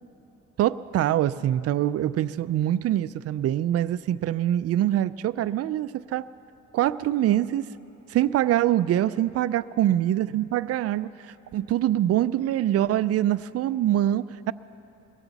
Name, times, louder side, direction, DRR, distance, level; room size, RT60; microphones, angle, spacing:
voice 1, 0.6-6.3 6.7-7.7 8.1-14.5, right 12 dB, 55° right, 14 dB, 0.4 m, -24 dB
20.5 x 16.0 x 4.1 m, 2.9 s
cardioid pair, 90°, 30 cm